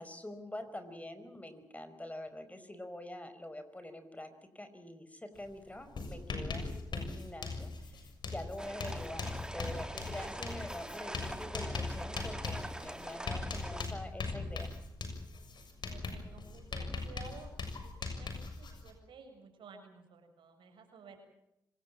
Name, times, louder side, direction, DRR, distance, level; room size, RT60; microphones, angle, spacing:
voice 1, 0.0-14.7, left 1 dB, 15° left, 9 dB, 5.0 m, -45 dB
Writing, 5.4-5.5 5.8-18.9, left 3 dB, 60° left, 6.7 m, -40 dB
sound 1, 8.6-13.9, right 1 dB, 10° right, 2.4 m, -44 dB
voice 2, 8.6-9.0 15.9-18.3 18.6-21.2, right 4 dB, 80° right, 4 dB, 6.8 m, -54 dB
26.0 x 18.5 x 7.6 m, 0.85 s
supercardioid pair, 50°, 8 cm